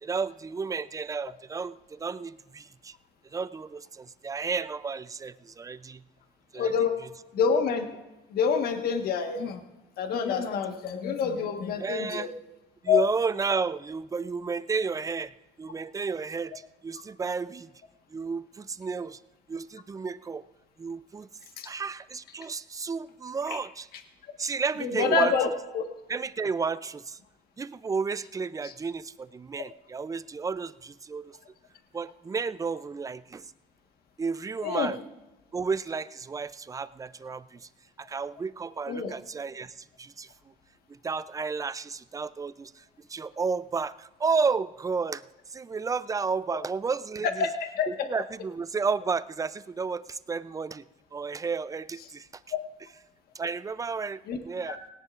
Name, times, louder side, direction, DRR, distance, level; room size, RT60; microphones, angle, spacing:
voice 1, 0.0-2.9 3.3-6.0 6.5-6.7 11.8-12.3 12.8-15.3 15.6-17.7 18.1-19.2 19.5-20.4 20.8-21.3 21.6-23.9 24.4-25.3 26.1-27.2 27.6-31.3 31.9-33.5 34.2-35.0 35.5-37.7 38.0-40.3 41.0-45.2 45.5-47.4 47.9-50.8 51.1-52.3 53.3-54.8, right 5 dB, 20° right, 15 dB, 0.4 m, -32 dB
voice 2, 6.5-7.0 7.3-7.9 8.3-9.6 10.0-12.3 12.9-13.0 21.6-21.7 23.5-23.6 24.8-25.8 34.6-34.9 38.9-39.1 47.4-48.1 52.5-52.6 54.3-54.4 54.7-54.8, left 6 dB, 65° left, 5 dB, 1.4 m, -27 dB
18.0 x 17.5 x 2.5 m, 1.0 s
cardioid pair, 110°, 17 cm